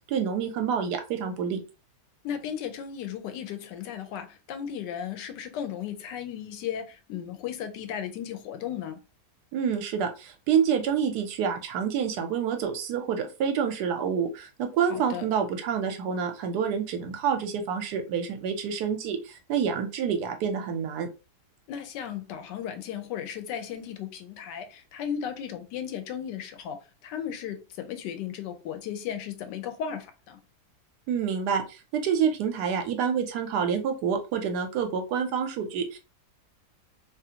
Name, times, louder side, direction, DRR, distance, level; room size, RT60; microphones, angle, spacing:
voice 1, 0.1-1.6 9.5-21.1 31.1-36.0, right 7 dB, 75° right, 1.1 m, -28 dB
voice 2, 2.2-9.0 14.9-15.3 21.7-26.8 27.0-30.4, left 9 dB, 80° left, 1.2 m, -35 dB
2.9 x 2.4 x 2.7 m
omnidirectional pair, 1.8 m